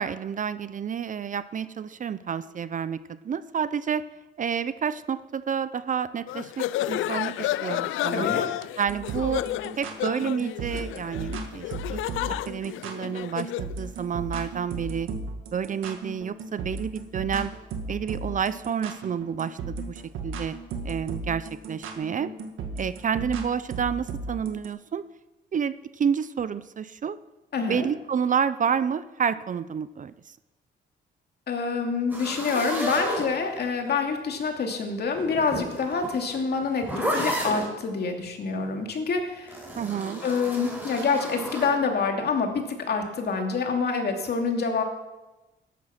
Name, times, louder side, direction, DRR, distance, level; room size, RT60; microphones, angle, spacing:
voice 1, 0.0-4.1 4.4-8.3 8.8-9.4 9.8-12.0 12.5-15.1 15.5-17.5 17.9-20.6 20.8-22.3 22.8-25.0 25.5-27.2 27.6-30.1 39.8-40.2, right 7 dB, 40° right, 15 dB, 0.6 m, -29 dB
sound 1, 6.3-13.7, left 14 dB, 80° left, 0.5 m, -31 dB
voice 2, 8.1-8.5 27.5-27.9 31.5-39.6 40.2-44.8, left 4 dB, 55° left, 3 dB, 2.6 m, -27 dB
sound 2, 8.9-24.7, right 4 dB, 80° right, 1.8 m, -35 dB
sound 3, 32.1-33.9 35.1-37.7 39.5-41.8, equal, 10° right, 4.6 m, -32 dB
14.0 x 11.0 x 5.9 m, 1.1 s
cardioid pair, 90°, 20 cm